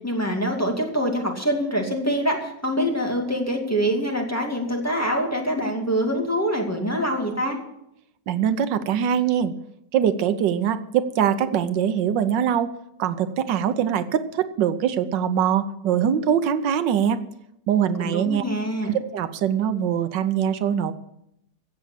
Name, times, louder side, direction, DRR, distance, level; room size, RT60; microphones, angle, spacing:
voice 1, 0.0-7.6 18.0-18.9, equal, 10° left, 0 dB, 2.3 m, -25 dB
voice 2, 8.3-9.5 9.9-12.7 13.0-17.2 17.7-18.4 18.8-20.9, right 8 dB, 85° right, 12 dB, 1.5 m, -23 dB
16.0 x 7.3 x 8.2 m, 0.80 s
omnidirectional pair, 1.9 m